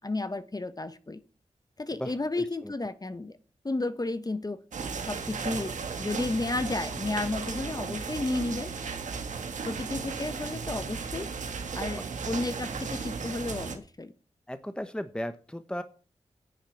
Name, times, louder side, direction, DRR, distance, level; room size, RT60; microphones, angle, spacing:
voice 1, 0.0-1.2 1.8-3.4 3.6-4.6 5.1-8.7 9.6-11.3 11.7-14.1, left 2 dB, 30° left, 1.1 m, -32 dB
voice 2, 2.0-2.7 12.0-12.1 14.5-15.8, equal, 5° left, 1.1 m, -36 dB
sound 1, 4.7-13.8, right 5 dB, 90° right, 1.9 m, -35 dB
10.5 x 7.4 x 8.3 m
cardioid pair, 45°, 12 cm